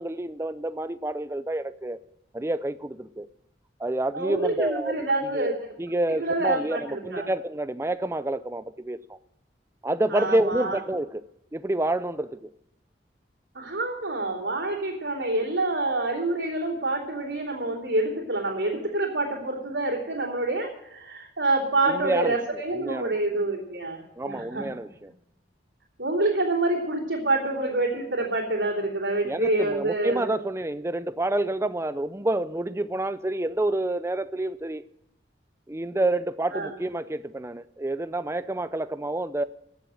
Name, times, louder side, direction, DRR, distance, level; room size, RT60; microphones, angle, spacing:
voice 1, 0.0-2.0 2.3-3.3 3.8-5.5 5.8-9.2 9.8-11.2 11.5-12.5 21.9-23.2 24.2-25.1 29.2-34.8 35.7-39.4, right 1 dB, 15° right, 0.4 m, -28 dB
voice 2, 4.1-5.5 6.2-7.3 10.1-10.8 13.5-24.7 26.0-30.4 36.5-36.7, right 2 dB, 85° right, 3.2 m, -27 dB
15.5 x 7.2 x 7.6 m
head